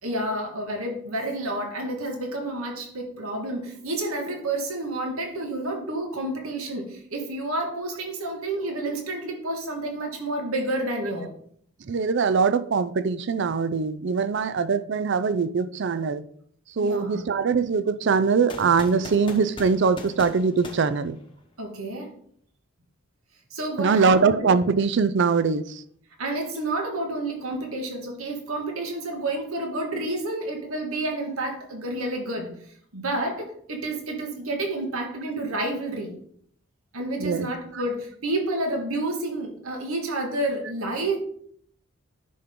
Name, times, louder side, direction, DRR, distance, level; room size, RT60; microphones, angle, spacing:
voice 1, 0.0-11.3 16.8-17.2 21.6-22.1 23.5-24.6 26.2-32.5 32.9-36.2 36.9-41.2, right 2 dB, 75° right, 1.8 m, -30 dB
voice 2, 11.9-16.2 16.8-21.2 23.8-25.8 37.2-37.5, right 5 dB, 55° right, 0.4 m, -22 dB
sound 1, 18.5-21.7, left 1 dB, 25° left, 1.0 m, -41 dB
10.0 x 5.9 x 3.7 m
head